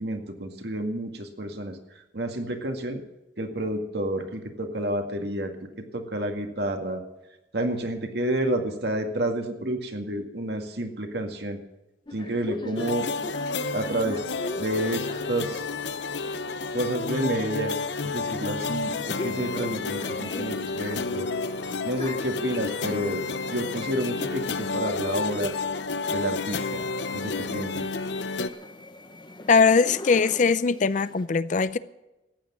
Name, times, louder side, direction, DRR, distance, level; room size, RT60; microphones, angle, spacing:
voice 1, 0.0-3.0 3.4-5.7 5.9-7.0 7.5-11.6 12.1-13.1 13.7-14.2 14.6-15.7 16.7-17.8 18.0-21.3 21.8-25.6 26.1-26.8 27.1-27.9, right 1 dB, 65° right, 2.0 m, -30 dB
sound 1, 12.1-31.3, left 1 dB, 25° left, 0.9 m, -42 dB
sound 2, 12.8-28.5, left 4 dB, 75° left, 0.8 m, -31 dB
voice 2, 29.5-31.8, left 5 dB, 45° left, 0.5 m, -21 dB
14.5 x 9.5 x 7.3 m
head